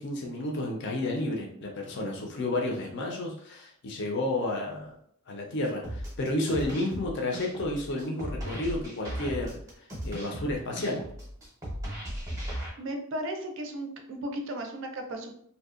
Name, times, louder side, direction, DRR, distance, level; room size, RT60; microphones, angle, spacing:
voice 1, 0.0-5.0 5.3-9.6 10.0-11.0, left 1 dB, 50° left, 0 dB, 0.5 m, -31 dB
sound 1, 5.8-12.7, equal, 15° right, 0.6 m, -37 dB
voice 2, 12.8-15.3, right 1 dB, 55° right, 4 dB, 0.4 m, -35 dB
2.6 x 2.2 x 2.4 m, 0.66 s
head